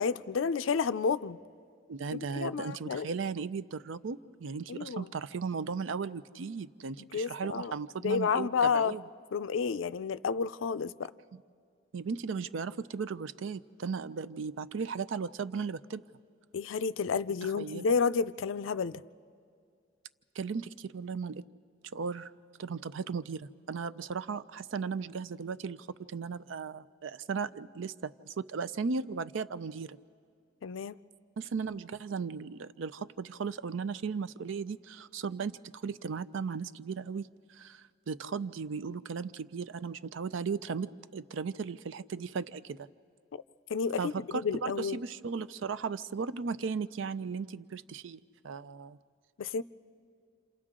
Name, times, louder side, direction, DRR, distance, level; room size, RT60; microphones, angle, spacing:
voice 1, 0.0-1.4 2.1-3.1 4.7-5.1 7.1-7.7 8.0-8.9 9.3-11.1 16.5-19.0 30.6-31.0 43.7-45.0 49.4-49.6, left 5 dB, 80° left, 0.4 m, -30 dB
voice 2, 1.9-9.0 11.9-16.0 17.4-17.9 20.4-21.4 21.9-22.3 22.6-30.0 31.4-42.9 44.0-49.0, right 5 dB, 75° right, 0.5 m, -36 dB
28.5 x 27.5 x 3.7 m
head